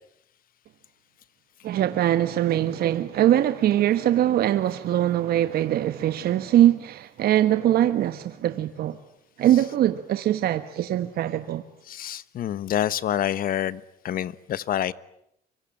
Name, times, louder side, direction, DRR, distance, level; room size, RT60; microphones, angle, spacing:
voice 1, 1.6-9.0 9.4-11.6, right 12 dB, 65° right, 1.4 m, -22 dB
voice 2, 11.9-14.9, left 11 dB, 55° left, 1.1 m, -27 dB
24.5 x 24.5 x 9.0 m
cardioid pair, 110°, 17 cm